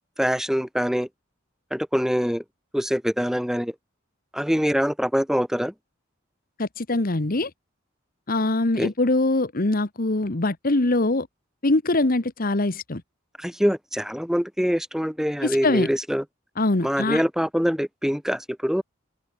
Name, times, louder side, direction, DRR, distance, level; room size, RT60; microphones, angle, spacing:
voice 1, 0.2-1.1 1.7-2.4 2.7-3.8 4.3-5.7 8.8-8.9 13.4-16.2 16.8-18.8, equal, 5° right, 3.4 m, -24 dB
voice 2, 6.6-7.5 8.3-11.3 11.6-13.0 15.4-15.9 16.6-17.2, left 2 dB, 50° left, 1.4 m, -23 dB
head